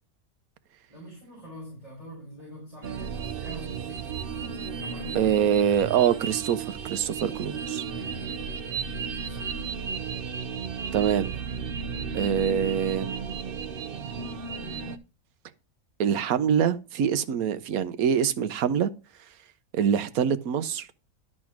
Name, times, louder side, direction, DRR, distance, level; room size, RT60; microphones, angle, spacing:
voice 1, 0.9-4.4 4.8-5.4 7.9-9.6 10.0-10.2 10.9-11.2, right 1 dB, 25° left, 4.8 m, -44 dB
sound 1, 2.8-15.0, right 6 dB, 50° right, 0.7 m, -34 dB
voice 2, 5.1-7.8 10.9-11.3 12.1-13.2 16.0-18.9 19.7-21.0, right 8 dB, 80° right, 1.1 m, -25 dB
12.0 x 4.3 x 5.8 m
omnidirectional pair, 1.5 m